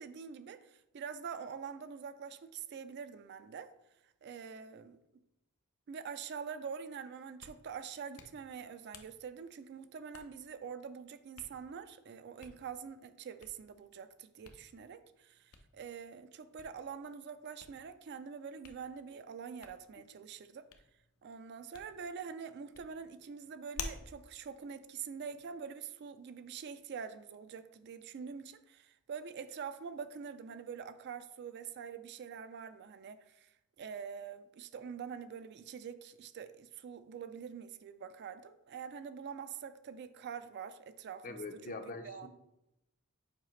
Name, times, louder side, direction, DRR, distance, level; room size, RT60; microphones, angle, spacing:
voice 1, 0.0-3.7 4.2-5.0 5.9-20.6 21.2-33.5 33.8-41.4 42.0-42.3, right 6 dB, 50° right, 11 dB, 0.3 m, -45 dB
Hands, 7.2-25.7, left 5 dB, 85° left, 0.7 m, -54 dB
voice 2, 41.2-42.3, left 3 dB, 35° left, 7 dB, 0.6 m, -43 dB
7.3 x 4.9 x 3.1 m, 0.88 s
head